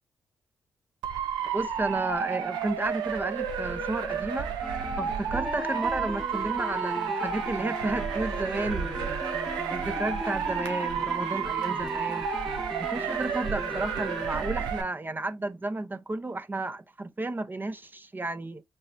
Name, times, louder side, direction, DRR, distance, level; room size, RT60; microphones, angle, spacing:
Motor vehicle (road) / Siren, 1.0-14.8, right 7 dB, 85° right, 0.9 m, -31 dB
voice 1, 1.5-4.6 5.0-9.2 9.7-12.3 12.8-18.6, right 2 dB, 25° right, 0.7 m, -32 dB
sound 1, 4.6-14.7, equal, 5° right, 1.0 m, -38 dB
5.3 x 3.2 x 2.5 m
hypercardioid pair, 45°, 7 cm